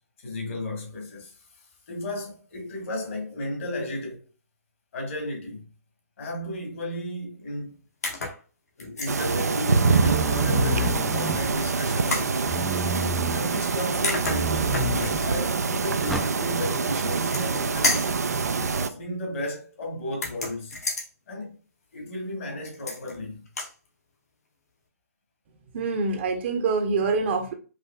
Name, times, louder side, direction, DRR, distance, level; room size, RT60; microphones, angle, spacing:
voice 1, 0.2-4.3 4.9-5.6 6.2-7.8 8.8-12.6 13.3-18.2 18.7-20.8 21.3-21.6 21.9-23.5, left 1 dB, 55° left, 1.6 m, -34 dB
sound 1, 8.0-8.4 8.8-9.2 10.9-11.5 12.1-12.3 13.7-13.8 14.0-15.3 17.0-17.6 17.8-18.2 20.1-21.1 22.6-23.2 23.5-23.7, left 2 dB, 70° left, 1.4 m, -30 dB
sound 2, 9.1-18.9, right 4 dB, 80° right, 0.4 m, -25 dB
sound 3, 9.8-11.7 12.5-13.4 14.2-15.3 16.1-16.3, right 1 dB, ahead, 0.3 m, -29 dB
voice 2, 25.7-27.5, right 4 dB, 45° right, 0.8 m, -25 dB
4.9 x 2.6 x 2.2 m
figure-of-eight pair, 130°, 9 cm